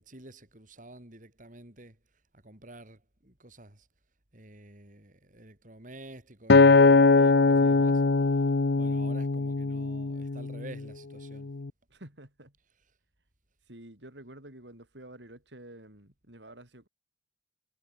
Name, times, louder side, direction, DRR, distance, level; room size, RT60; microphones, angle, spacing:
voice 1, 0.0-3.9 4.3-8.0 8.3-11.5, right 1 dB, 45° right, 4.6 m, -50 dB
Acoustic guitar, 6.5-10.8 11.4-11.7, left 3 dB, 70° left, 0.7 m, -21 dB
voice 2, 11.9-12.5 13.7-16.9, right 1 dB, 85° right, 6.6 m, -49 dB
head